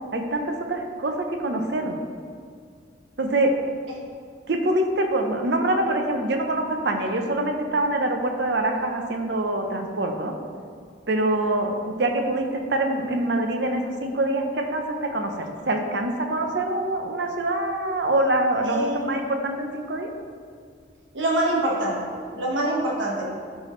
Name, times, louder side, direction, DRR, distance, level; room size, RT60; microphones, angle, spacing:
voice 1, 0.1-2.0 3.2-3.5 4.5-10.3 11.1-20.1, right 1 dB, 60° right, 4 dB, 0.8 m, -25 dB
voice 2, 18.7-19.1 21.1-22.0 22.3-23.2, right 1 dB, 85° right, -3 dB, 1.5 m, -24 dB
11.5 x 4.7 x 3.2 m, 2.2 s
head